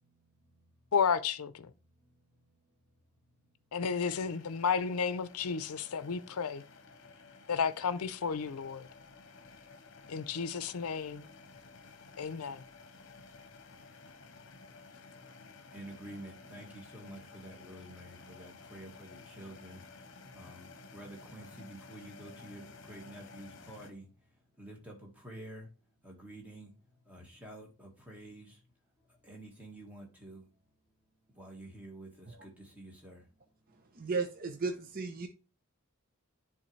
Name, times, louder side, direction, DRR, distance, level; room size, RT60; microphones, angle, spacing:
voice 1, 0.9-1.7 3.7-6.6 7.5-8.9 10.1-11.2 12.2-12.6, left 6 dB, 85° left, 0.5 m, -32 dB
sound 1, 3.9-23.9, left 4 dB, 55° left, 0.9 m, -54 dB
voice 2, 15.7-24.1 24.6-25.7 26.0-26.7 27.1-28.6 29.1-30.5 31.3-33.3, right 1 dB, 5° right, 1.7 m, -49 dB
voice 3, 33.7-35.3, right 4 dB, 40° right, 0.6 m, -35 dB
10.0 x 3.8 x 3.2 m
head